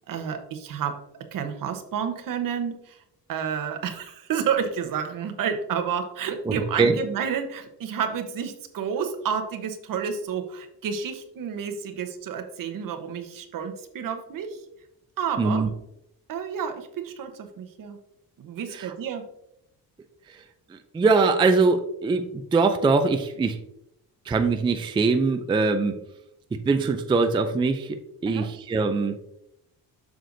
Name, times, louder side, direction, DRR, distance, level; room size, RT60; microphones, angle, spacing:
voice 1, 0.1-1.0 1.3-3.0 3.3-14.6 15.2-15.6 16.3-18.0 18.4-19.3 28.3-28.5, right 7 dB, 60° right, 6 dB, 1.0 m, -30 dB
voice 2, 6.5-7.0 15.4-15.7 20.7-23.6 24.3-25.9 26.5-29.2, right 4 dB, 15° right, 7 dB, 0.3 m, -22 dB
7.6 x 6.5 x 2.6 m, 0.80 s
cardioid pair, 155°, 37 cm